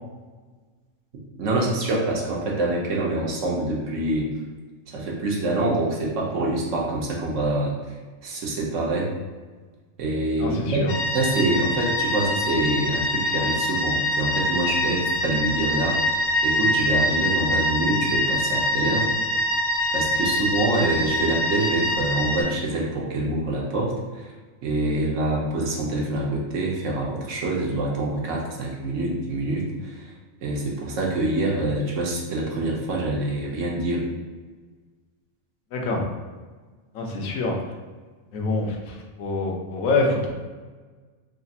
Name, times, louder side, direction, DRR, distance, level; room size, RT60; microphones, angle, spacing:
voice 1, 1.4-4.3 4.9-7.7 8.2-9.1 10.0-19.1 19.9-24.3 24.6-30.1 30.4-34.0, right 2 dB, 70° right, -2 dB, 1.1 m, -26 dB
voice 2, 10.4-10.9 35.7-36.1 36.9-37.6 38.3-40.3, left 3 dB, 80° left, 1 dB, 1.1 m, -26 dB
sound 1, 10.9-22.4, left 1 dB, 55° left, 0.7 m, -24 dB
3.3 x 2.4 x 4.0 m, 1.4 s
omnidirectional pair, 1.4 m